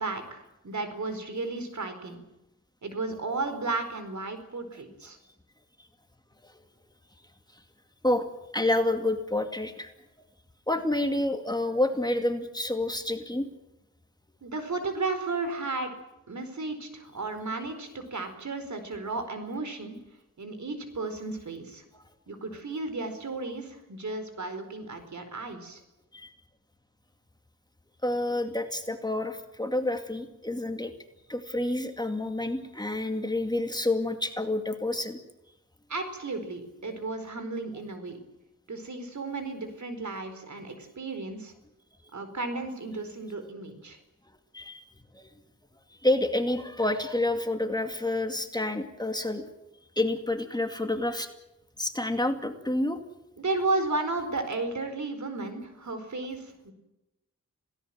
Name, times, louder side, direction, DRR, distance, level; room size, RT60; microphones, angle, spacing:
voice 1, 0.0-2.2 2.8-5.2 14.4-15.9 16.3-20.0 20.4-21.8 22.3-25.8 35.9-38.2 38.7-41.5 42.1-44.0 53.4-56.7, right 3 dB, 65° right, 8 dB, 4.4 m, -34 dB
voice 2, 8.0-9.9 10.7-13.5 21.9-22.0 26.1-26.3 28.0-30.9 31.3-35.2 44.5-44.8 45.1-45.3 46.0-49.4 50.0-51.3 51.8-53.0, left 1 dB, 15° left, 6 dB, 2.4 m, -28 dB
27.5 x 18.0 x 7.7 m, 0.94 s
wide cardioid pair, 95°, 31 cm